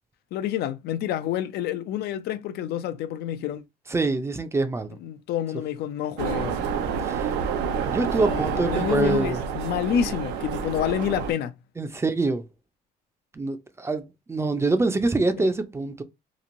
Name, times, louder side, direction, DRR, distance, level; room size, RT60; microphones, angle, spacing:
voice 1, 0.3-3.6 5.0-6.7 8.3-11.6 15.4-15.5, left 10 dB, 70° left, 0.4 m, -28 dB
voice 2, 3.9-5.0 7.0-7.3 7.9-9.4 11.8-12.5 13.3-16.0, right 3 dB, 15° right, 0.4 m, -25 dB
sound 1, 6.2-11.3, right 6 dB, 90° right, 0.5 m, -28 dB
3.0 x 2.5 x 2.5 m
cardioid pair, 110°, 17 cm